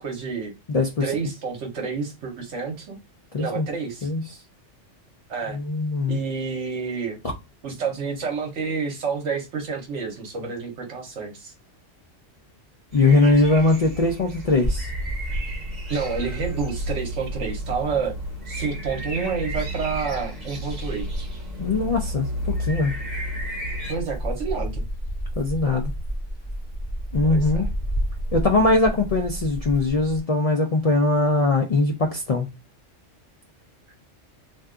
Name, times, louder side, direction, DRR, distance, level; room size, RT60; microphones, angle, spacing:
voice 1, 0.0-0.5 1.0-3.0 3.4-4.1 5.3-5.6 6.1-7.2 7.6-11.5 15.9-18.2 18.5-21.3 23.9-24.8 27.2-27.7, right 5 dB, 75° right, 1.1 m, -29 dB
voice 2, 0.7-1.1 3.3-3.7 4.0-4.4 5.5-6.2 12.9-14.9 21.6-22.9 25.4-25.9 27.1-27.6 28.3-32.5, left 2 dB, 75° left, 0.3 m, -21 dB
sound 1, 12.9-23.9, equal, 40° right, 0.9 m, -33 dB
sound 2, 14.6-30.2, equal, 35° left, 0.9 m, -32 dB
2.5 x 2.3 x 3.6 m
omnidirectional pair, 1.2 m